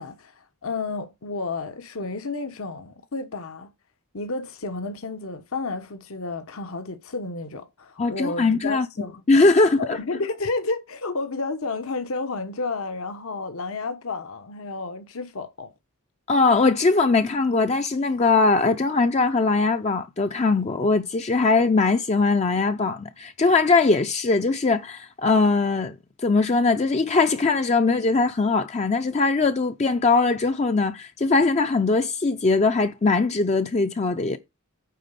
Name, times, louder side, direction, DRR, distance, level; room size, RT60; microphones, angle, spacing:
voice 1, 0.0-3.7 4.1-9.2 9.8-15.7, left 3 dB, 75° left, 1.1 m, -31 dB
voice 2, 8.0-8.9 9.3-10.0 16.3-34.4, left 3 dB, 30° left, 0.5 m, -21 dB
9.2 x 4.0 x 6.8 m
head